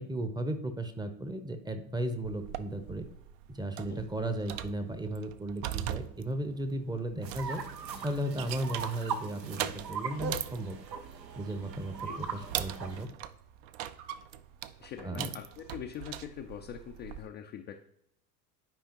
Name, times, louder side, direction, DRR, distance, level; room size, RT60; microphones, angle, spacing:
voice 1, 0.0-3.1 3.5-7.6 8.0-10.8 11.3-13.1 15.0-15.3, right 1 dB, 10° right, 9 dB, 0.7 m, -35 dB
sound 1, 2.2-17.3, right 12 dB, 55° right, 0.5 m, -42 dB
sound 2, 7.2-13.1, right 5 dB, 85° right, 0.8 m, -40 dB
voice 2, 14.8-17.8, left 9 dB, 25° left, 3 dB, 0.3 m, -43 dB
10.5 x 4.9 x 2.9 m, 0.76 s
hypercardioid pair, 80°, 49 cm